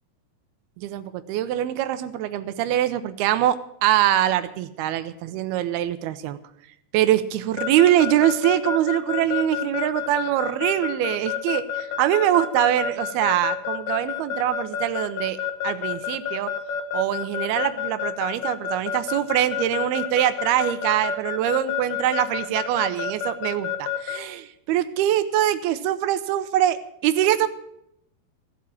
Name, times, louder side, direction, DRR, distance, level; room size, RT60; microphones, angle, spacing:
voice 1, 0.8-6.4 6.9-15.4 15.6-16.5 16.9-26.8 27.0-27.5, right 12 dB, 80° right, 12 dB, 2.6 m, -23 dB
Keyboard (musical) / Alarm, 7.6-24.2, left 9 dB, 70° left, 1.9 m, -28 dB
16.0 x 7.3 x 8.7 m, 0.76 s
omnidirectional pair, 4.7 m